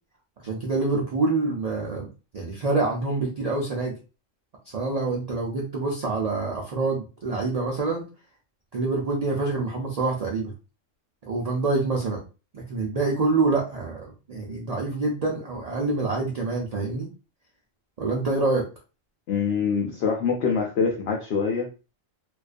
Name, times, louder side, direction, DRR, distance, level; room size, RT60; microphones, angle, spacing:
voice 1, 0.4-2.1 2.3-4.0 4.7-8.1 8.7-10.5 11.2-12.2 12.5-17.1 18.0-18.7, right 3 dB, 75° right, -1 dB, 0.3 m, -26 dB
voice 2, 19.3-21.7, left 5 dB, 65° left, 1 dB, 0.7 m, -24 dB
2.4 x 2.2 x 2.4 m, 0.32 s
omnidirectional pair, 1.4 m